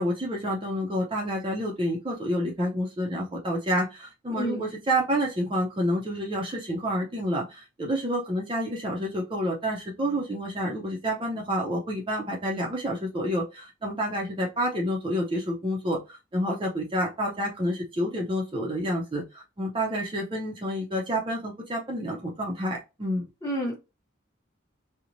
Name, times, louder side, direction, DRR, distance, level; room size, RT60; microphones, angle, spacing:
voice 1, 0.0-23.2, equal, 25° right, -1 dB, 0.5 m, -29 dB
voice 2, 4.3-4.6 23.4-23.7, equal, 15° left, -2 dB, 0.9 m, -29 dB
2.9 x 2.0 x 2.5 m, 0.26 s
head